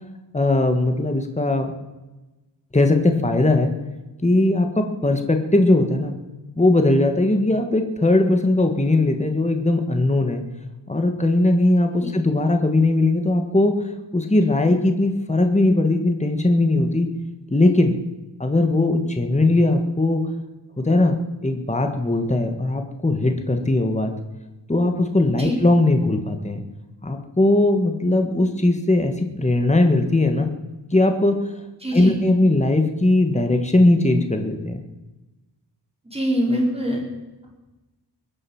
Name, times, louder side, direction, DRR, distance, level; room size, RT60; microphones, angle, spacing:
voice 1, 0.3-1.7 2.7-3.7 4.2-6.1 6.6-10.4 10.9-13.8 14.1-17.1 17.5-17.9 18.4-20.3 20.8-21.2 21.4-24.1 24.7-26.6 27.0-30.5 30.9-31.4 31.9-34.8, left 2 dB, 15° left, 5 dB, 1.7 m, -19 dB
voice 2, 31.8-32.1 36.0-37.0, equal, 15° right, -1 dB, 4.7 m, -23 dB
22.5 x 8.2 x 7.2 m, 1.1 s
wide cardioid pair, 130°, 43 cm